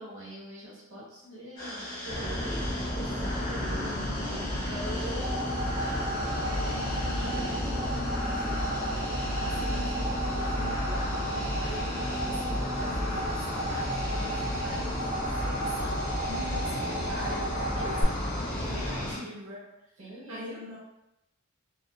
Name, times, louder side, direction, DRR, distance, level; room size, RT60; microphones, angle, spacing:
voice 1, 0.0-6.4 17.7-19.3 20.0-20.6, right 1 dB, 60° right, -5 dB, 1.0 m, -44 dB
sound 1, 1.6-19.2, left 1 dB, 35° left, 1.0 m, -38 dB
sound 2, 2.1-19.1, left 1 dB, 15° left, 0.4 m, -33 dB
voice 2, 4.3-4.8 5.8-6.0 6.4-20.8, equal, 85° right, -5 dB, 0.5 m, -44 dB
sound 3, 4.9-18.0, right 1 dB, 40° right, 1.2 m, -36 dB
2.7 x 2.2 x 2.2 m, 0.91 s
head